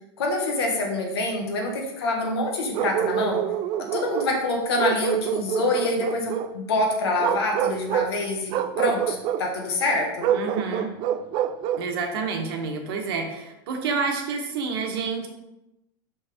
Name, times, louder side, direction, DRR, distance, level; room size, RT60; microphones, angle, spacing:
voice 1, 0.2-3.4 3.8-10.3, left 2 dB, 85° left, 1 dB, 1.7 m, -26 dB
Bark, 2.7-4.4 4.8-6.5 7.2-8.1 8.5-9.4 10.2-11.9, right 10 dB, 40° right, 0.3 m, -26 dB
voice 2, 10.3-10.9 11.8-15.3, right 4 dB, 70° right, 3 dB, 1.4 m, -28 dB
5.5 x 5.5 x 3.6 m, 0.90 s
supercardioid pair, 140°, 13 cm